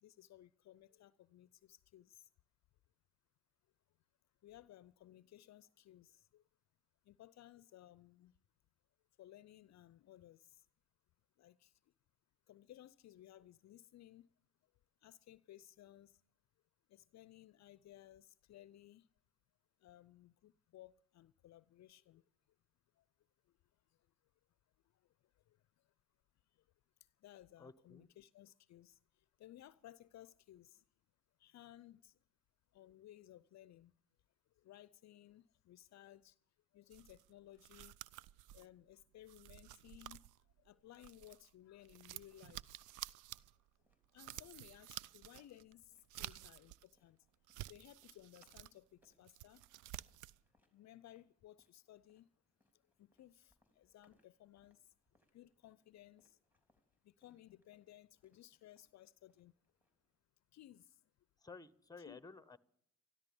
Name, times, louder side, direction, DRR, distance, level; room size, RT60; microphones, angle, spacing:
voice 1, 0.0-2.3 4.4-6.4 7.1-8.3 9.2-10.6 11.4-11.7 12.5-14.3 15.0-16.2 16.9-19.1 19.8-22.2 23.0-23.1 25.5-25.6 27.2-29.0 29.4-30.8 31.4-32.1 32.7-33.9 34.6-36.4 36.7-38.0 38.5-40.2 40.6-42.6 44.1-47.2 47.7-49.6 50.7-52.3 53.0-54.8 55.3-56.4 57.0-59.5 60.5-61.0 62.0-62.2, left 13 dB, 60° left, 0.6 m, -59 dB
voice 2, 27.6-28.1 61.4-62.6, left 4 dB, 10° left, 1.0 m, -54 dB
sound 1, 36.9-41.5 41.8-46.9 47.3-48.8 49.1-50.4, right 15 dB, 75° right, 0.5 m, -52 dB
sound 2, 41.6-60.2, equal, 5° right, 3.5 m, -80 dB
13.5 x 13.0 x 7.0 m
supercardioid pair, 60°, 31 cm